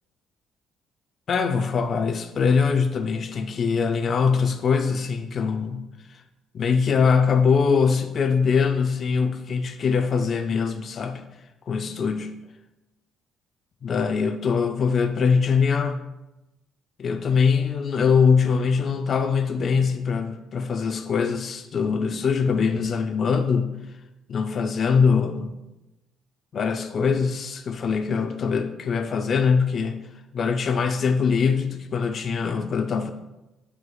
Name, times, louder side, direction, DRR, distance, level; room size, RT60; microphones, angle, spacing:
voice 1, 1.3-6.2 6.5-11.2 11.7-12.3 13.8-16.0 17.0-23.7 24.3-25.5 26.5-30.0 30.3-33.1, left 5 dB, 50° left, 6 dB, 0.5 m, -22 dB
7.6 x 6.3 x 2.3 m, 0.97 s
cardioid pair, 100°, 0 cm